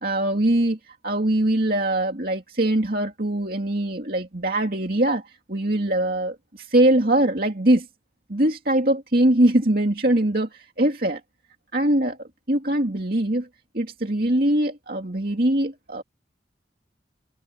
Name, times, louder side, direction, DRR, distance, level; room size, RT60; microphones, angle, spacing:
voice 1, 0.0-5.2 5.5-7.9 8.3-11.2 11.7-12.2 12.5-13.5 13.7-16.0, right 1 dB, 55° right, 2.5 m, -22 dB
head